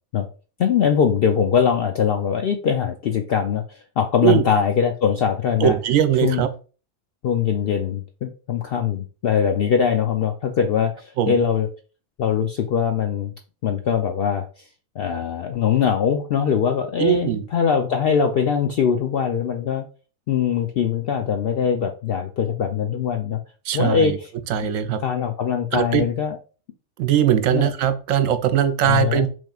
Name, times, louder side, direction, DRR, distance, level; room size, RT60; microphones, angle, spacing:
voice 1, 0.6-5.7 6.2-6.4 7.2-11.7 12.2-13.3 13.6-14.4 15.0-19.8 20.3-23.4 23.7-24.3 25.0-26.4 27.5-27.7 28.8-29.3, left 7 dB, 70° left, 4 dB, 0.5 m, -22 dB
voice 2, 5.6-6.5 11.2-11.4 17.0-17.4 23.7-24.2 24.5-25.0 25.7-26.0 27.0-29.3, right 10 dB, 75° right, 10 dB, 0.9 m, -20 dB
6.1 x 3.6 x 2.3 m, 0.36 s
omnidirectional pair, 1.5 m